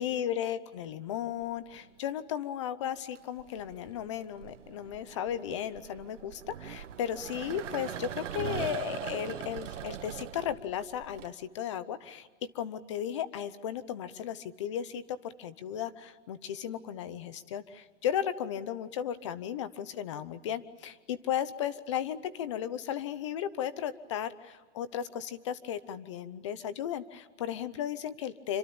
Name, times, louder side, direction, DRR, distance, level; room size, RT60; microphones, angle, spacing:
voice 1, 0.0-12.3 12.5-28.6, left 9 dB, 25° left, 15 dB, 0.8 m, -35 dB
sound 1, 1.4-1.9 3.0-11.3, right 10 dB, 85° right, 1.5 m, -41 dB
27.0 x 25.5 x 8.7 m, 1.4 s
hypercardioid pair, 180°, 36 cm